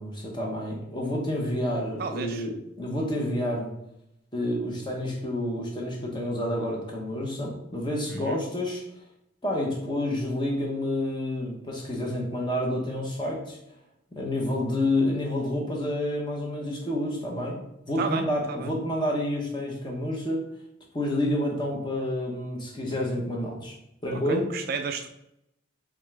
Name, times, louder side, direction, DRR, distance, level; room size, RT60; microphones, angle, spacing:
voice 1, 0.0-3.7 4.3-8.8 9.4-13.6 14.1-17.6 17.9-20.4 20.9-23.7 24.0-24.5, left 1 dB, 25° left, -2 dB, 0.8 m, -29 dB
voice 2, 2.0-2.4 8.1-8.4 18.0-18.7 24.1-25.1, right 5 dB, 50° right, 6 dB, 0.3 m, -33 dB
3.5 x 3.5 x 3.3 m, 0.81 s
head